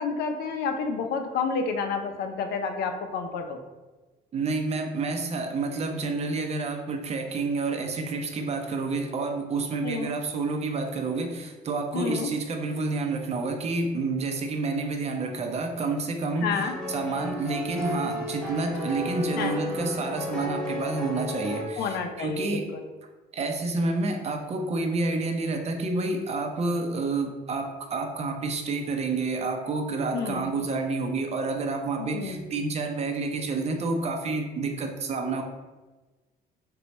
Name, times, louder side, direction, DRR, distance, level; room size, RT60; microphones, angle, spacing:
voice 1, 0.0-3.6 9.8-10.1 11.9-12.3 16.4-16.7 19.4-19.6 21.8-22.8 30.1-30.4 32.0-32.4, left 5 dB, 70° left, 6 dB, 0.5 m, -30 dB
voice 2, 4.3-22.7 23.3-35.4, right 3 dB, 40° right, 3 dB, 0.6 m, -29 dB
sound 1, 16.6-21.7, left 1 dB, 5° left, 1.1 m, -33 dB
4.2 x 2.3 x 4.0 m, 1.2 s
cardioid pair, 110°, 17 cm